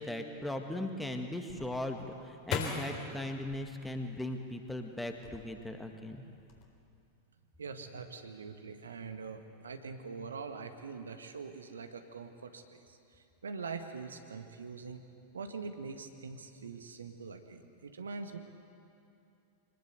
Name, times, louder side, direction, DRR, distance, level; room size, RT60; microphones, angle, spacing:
voice 1, 0.0-6.2, left 1 dB, 5° left, 4 dB, 1.9 m, -38 dB
sound 1, 1.5-4.6 5.1-5.8 6.2-6.6, left 6 dB, 40° left, 3.6 m, -40 dB
voice 2, 7.6-15.0 15.3-18.4, right 5 dB, 70° right, 7 dB, 1.6 m, -43 dB
25.0 x 20.0 x 8.1 m, 2.7 s
figure-of-eight pair, 90°, 0 cm